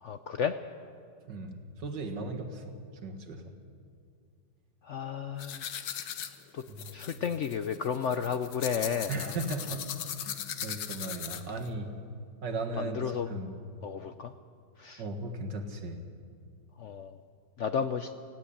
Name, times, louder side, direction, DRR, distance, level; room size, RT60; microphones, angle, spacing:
voice 1, 0.0-0.6 4.8-6.2 6.5-6.6 6.9-9.4 12.8-13.4 13.8-14.3 14.8-15.0 16.8-17.2 17.6-18.1, left 7 dB, 65° left, 9 dB, 0.7 m, -33 dB
voice 2, 1.3-2.8 3.0-3.4 6.7-6.9 9.1-9.9 10.2-10.4 10.6-11.9 12.4-13.0 13.3-13.5 15.0-16.0, right 2 dB, 85° right, 5 dB, 2.4 m, -36 dB
sound 1, 5.4-11.7, left 9 dB, 85° left, 1.6 m, -39 dB
19.0 x 16.5 x 8.5 m, 2.2 s
omnidirectional pair, 1.9 m